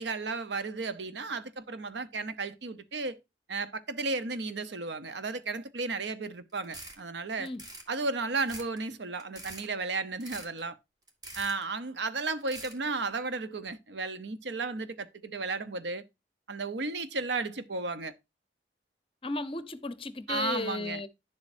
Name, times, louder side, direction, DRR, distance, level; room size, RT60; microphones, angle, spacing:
voice 1, 0.0-3.2 3.5-7.5 7.9-10.8 11.3-16.0 16.5-18.1 20.3-21.0, right 3 dB, 70° right, 0.9 m, -34 dB
sound 1, 6.6-7.0 7.4-7.9 8.4-8.8 9.2-9.7 10.2-10.6 11.1-11.6 12.4-12.8, right 1 dB, 20° right, 1.9 m, -44 dB
voice 2, 19.2-21.1, left 3 dB, 30° left, 0.8 m, -34 dB
10.5 x 7.3 x 2.6 m
head